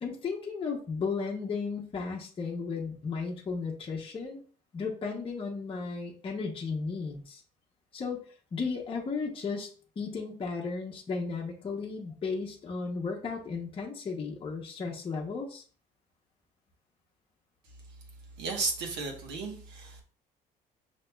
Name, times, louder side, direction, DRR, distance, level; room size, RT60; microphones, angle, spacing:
voice 1, 0.0-4.4 4.7-7.4 7.9-8.2 8.5-15.6, left 4 dB, 30° left, -1 dB, 0.7 m, -34 dB
voice 2, 18.4-20.0, right 3 dB, 85° right, 2 dB, 1.1 m, -34 dB
5.7 x 2.8 x 2.2 m, 0.42 s
cardioid pair, 110°, 17 cm